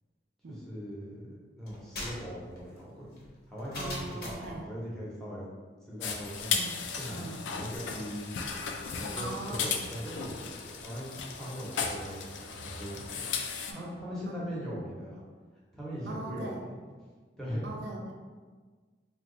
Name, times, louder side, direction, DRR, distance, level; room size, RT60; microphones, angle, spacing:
voice 1, 0.5-1.3 1.6-3.2 3.5-5.5 5.9-6.6 7.0-8.3 8.9-13.3 13.7-15.2 15.7-16.5 17.4-17.7, equal, 5° left, -7 dB, 0.7 m, -40 dB
sound 1, 1.7-4.6, left 1 dB, 55° left, 0.7 m, -42 dB
voice 2, 3.7-4.6 6.5-6.8 7.1-7.4 9.1-9.9 13.7-14.0 14.3-14.4 16.1-16.7 17.6-18.1, right 2 dB, 70° right, 0 dB, 0.5 m, -41 dB
sound 2, 6.0-13.7, left 5 dB, 80° left, 0.3 m, -36 dB
2.8 x 2.2 x 3.7 m, 1.5 s
head